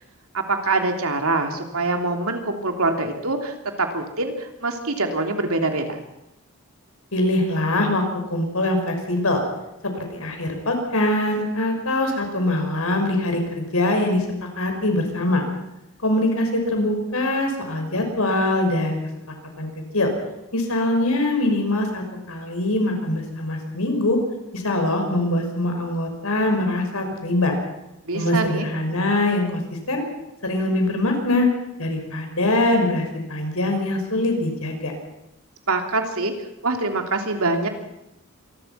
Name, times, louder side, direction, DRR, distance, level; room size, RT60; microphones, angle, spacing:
voice 1, 0.3-6.0 28.1-28.6 35.7-36.3 36.6-37.7, right 2 dB, 85° right, 4 dB, 3.2 m, -24 dB
voice 2, 7.1-8.0 8.3-9.4 10.1-14.3 14.6-15.4 16.0-19.0 19.6-20.1 20.5-24.2 24.5-27.5 28.1-30.0 30.4-31.5 31.8-34.9, left 1 dB, 85° left, 4 dB, 6.0 m, -23 dB
26.0 x 20.5 x 5.9 m, 0.88 s
head